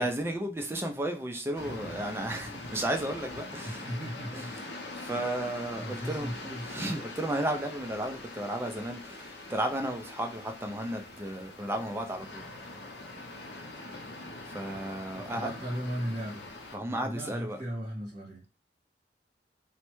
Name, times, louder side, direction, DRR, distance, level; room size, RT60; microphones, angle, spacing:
voice 1, 0.0-3.9 4.3-4.6 5.0-6.3 6.6-12.4 14.5-15.5 16.7-17.6, right 1 dB, 15° right, 0.3 m, -33 dB
sound 1, 1.5-16.8, left 2 dB, 75° left, 0.6 m, -43 dB
voice 2, 3.6-4.6 5.8-6.7 15.2-18.4, equal, 40° right, 1.4 m, -37 dB
3.1 x 2.1 x 3.0 m
head